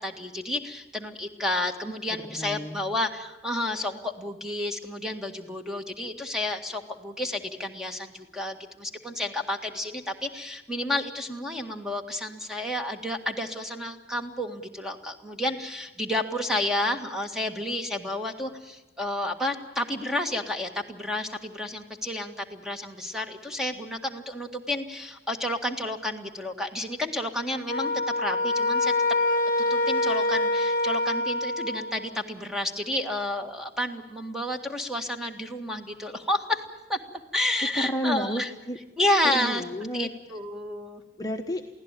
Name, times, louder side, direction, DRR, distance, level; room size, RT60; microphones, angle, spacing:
voice 1, 0.0-28.9 29.7-36.6 36.9-37.0 37.3-38.5 39.0-39.6 39.9-41.0, left 1 dB, 5° right, 4 dB, 1.8 m, -30 dB
voice 2, 2.1-2.8 37.8-38.8 39.3-40.1 41.2-41.8, equal, 20° left, 2 dB, 1.0 m, -31 dB
sound 1, 27.7-32.1, left 2 dB, 50° left, 1.0 m, -25 dB
23.5 x 16.5 x 9.1 m, 1.1 s
head